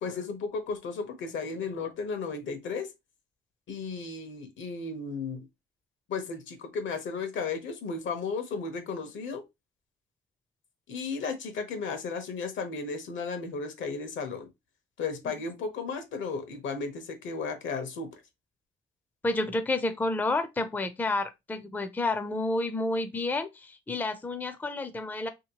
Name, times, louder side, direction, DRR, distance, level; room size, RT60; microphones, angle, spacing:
voice 1, 0.0-2.9 3.7-5.5 6.1-9.4 10.9-14.5 15.0-18.1, left 4 dB, 75° left, 0.9 m, -34 dB
voice 2, 19.2-25.3, left 2 dB, 10° left, 0.4 m, -30 dB
3.0 x 2.9 x 2.9 m
cardioid pair, 90°, 20 cm